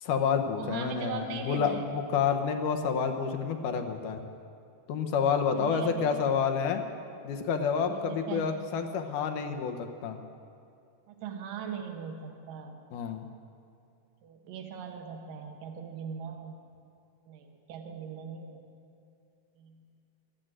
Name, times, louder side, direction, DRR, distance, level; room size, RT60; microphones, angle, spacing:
voice 1, 0.0-4.2 4.9-6.8 7.2-10.2 12.9-13.3, left 6 dB, 75° left, 6 dB, 2.4 m, -29 dB
voice 2, 0.6-1.9 5.6-6.2 7.9-8.5 11.1-12.8 14.2-16.5 17.3-18.6 19.6-19.8, right 6 dB, 80° right, 4 dB, 2.9 m, -40 dB
14.5 x 12.5 x 7.7 m, 2.6 s
omnidirectional pair, 4.0 m